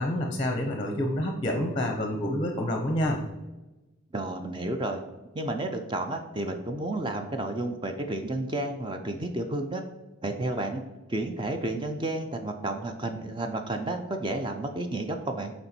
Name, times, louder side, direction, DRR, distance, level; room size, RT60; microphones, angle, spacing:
voice 1, 0.0-3.2, left 1 dB, 25° left, 3 dB, 0.6 m, -28 dB
voice 2, 4.1-5.0 5.3-9.8 10.2-10.8 11.1-15.5, right 2 dB, 20° right, 5 dB, 0.4 m, -31 dB
6.8 x 4.4 x 4.3 m, 1.1 s
head